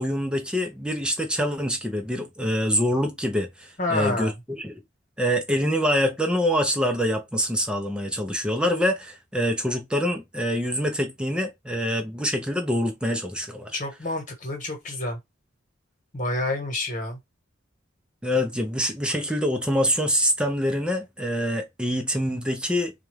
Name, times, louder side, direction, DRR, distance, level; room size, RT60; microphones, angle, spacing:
voice 1, 0.0-4.8 5.2-13.8 18.2-22.9, equal, 5° right, 0.7 m, -25 dB
voice 2, 3.8-4.3 13.7-15.2 16.1-17.2, left 2 dB, 40° left, 1.4 m, -28 dB
4.2 x 2.5 x 3.3 m
head